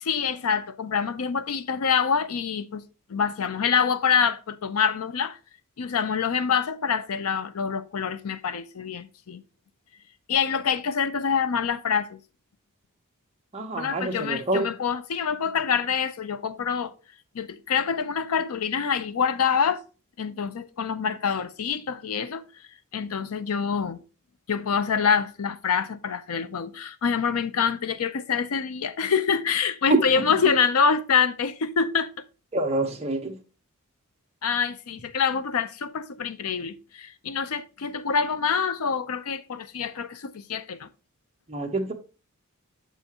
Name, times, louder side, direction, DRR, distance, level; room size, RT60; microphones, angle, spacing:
voice 1, 0.0-2.8 3.1-5.4 5.8-9.4 10.3-12.2 13.8-16.9 17.3-19.8 20.2-22.4 22.9-24.0 24.5-32.1 34.4-40.9, left 6 dB, 80° left, 0.5 m, -26 dB
voice 2, 13.5-14.7 29.9-30.0 32.5-33.4 41.5-41.9, right 2 dB, 30° right, 0.9 m, -26 dB
7.4 x 5.5 x 2.9 m
head